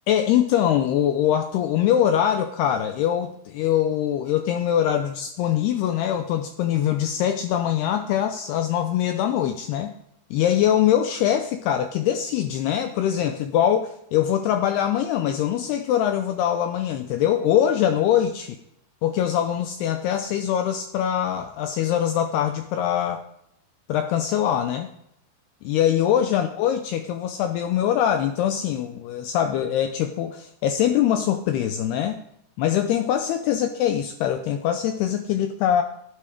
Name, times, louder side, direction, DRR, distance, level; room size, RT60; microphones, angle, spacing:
voice 1, 0.1-9.9 10.3-18.6 19.0-23.2 23.9-24.9 25.6-32.2 32.6-35.8, left 10 dB, 85° left, 7 dB, 2.3 m, -23 dB
12.0 x 11.5 x 5.0 m, 0.74 s
omnidirectional pair, 5.4 m